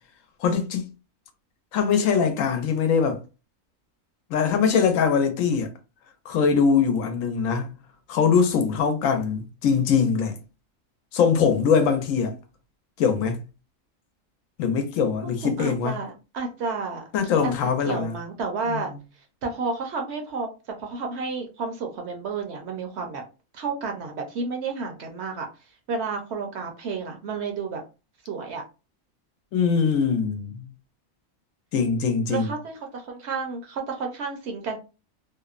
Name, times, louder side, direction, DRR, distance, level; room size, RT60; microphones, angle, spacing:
voice 1, 0.4-0.9 1.7-3.2 4.3-5.7 6.3-7.7 8.1-10.4 11.1-12.3 13.0-13.4 14.6-16.0 17.1-18.1 18.7-19.0 29.5-30.7 31.7-32.5, left 6 dB, 90° left, 1.0 m, -22 dB
voice 2, 15.2-17.0 17.4-17.5 17.8-18.9 19.4-20.5 20.8-23.2 23.5-25.5 25.9-27.8 28.3-28.6 32.3-34.8, right 4 dB, 65° right, 0.8 m, -31 dB
2.8 x 2.0 x 2.3 m
omnidirectional pair, 1.3 m